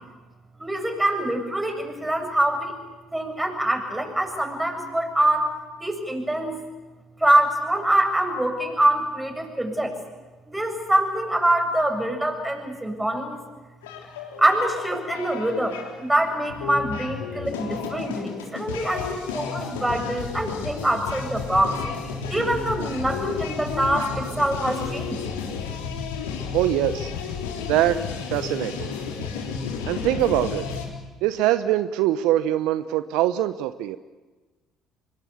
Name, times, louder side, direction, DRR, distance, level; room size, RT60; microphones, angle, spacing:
voice 1, 0.6-2.7 3.1-5.5 5.8-6.6 7.2-10.0 10.5-13.4 14.4-21.8 22.3-25.2, right 1 dB, 10° right, 4 dB, 7.3 m, -24 dB
sound 1, 13.8-30.9, left 6 dB, 85° left, 3.5 m, -32 dB
voice 2, 26.5-27.1 27.7-28.0 28.3-28.9 29.9-30.7 31.2-34.0, right 14 dB, 70° right, 13 dB, 0.8 m, -23 dB
25.0 x 22.0 x 8.5 m, 1.2 s
hypercardioid pair, 55°, 0 cm